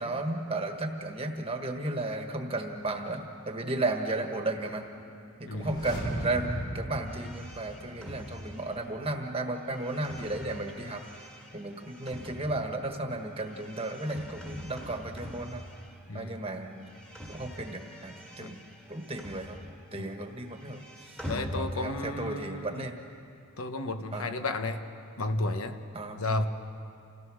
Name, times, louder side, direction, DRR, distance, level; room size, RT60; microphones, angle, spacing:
voice 1, 0.0-3.2 3.4-4.8 5.4-11.0 11.5-15.6 16.1-16.9 17.3-18.6 18.9-19.6 19.9-23.0 24.1-24.3 25.9-26.2, right 2 dB, 25° right, 4 dB, 1.4 m, -34 dB
sound 1, 5.5-8.4 8.7-8.8, right 1 dB, 50° left, 4.5 m, -37 dB
sound 2, 7.0-16.3 16.5-20.0 20.3-22.2, equal, 5° left, 1.7 m, -44 dB
voice 2, 16.1-16.4 18.4-18.5 20.0-20.1 21.3-22.9 23.6-24.8 25.2-25.8 26.2-26.5, left 2 dB, 70° left, 8 dB, 1.0 m, -32 dB
28.0 x 17.0 x 6.3 m, 2.6 s
head